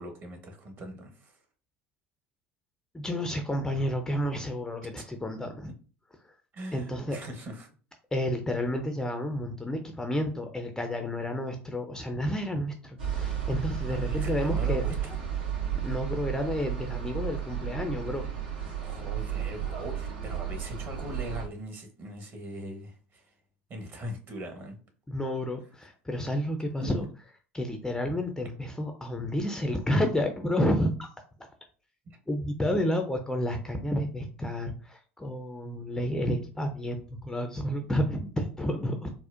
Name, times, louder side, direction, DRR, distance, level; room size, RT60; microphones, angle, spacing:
voice 1, 0.0-1.4 5.0-5.1 6.5-7.7 13.9-15.2 18.8-23.3 23.7-24.8 26.8-26.9 32.0-32.2, equal, 35° right, 4 dB, 1.0 m, -41 dB
voice 2, 2.9-5.7 6.7-7.2 8.1-14.8 15.8-18.3 25.1-27.0 27.5-31.1 32.3-39.1, equal, 10° left, 5 dB, 0.5 m, -30 dB
sound 1, 13.0-21.5, right 8 dB, 80° right, 1.4 m, -33 dB
4.2 x 2.1 x 2.5 m, 0.38 s
figure-of-eight pair, 75°, 6 cm